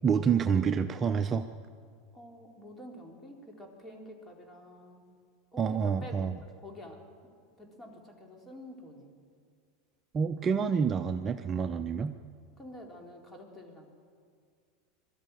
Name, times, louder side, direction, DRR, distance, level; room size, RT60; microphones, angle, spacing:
voice 1, 0.0-1.5 5.6-6.4 10.1-12.1, right 6 dB, 25° right, 8 dB, 0.6 m, -28 dB
voice 2, 2.1-5.0 5.5-6.3 6.6-7.0 7.6-9.1 12.6-13.9, equal, 15° left, 1 dB, 3.7 m, -48 dB
21.5 x 13.0 x 9.1 m, 2.2 s
supercardioid pair, 115°, 0 cm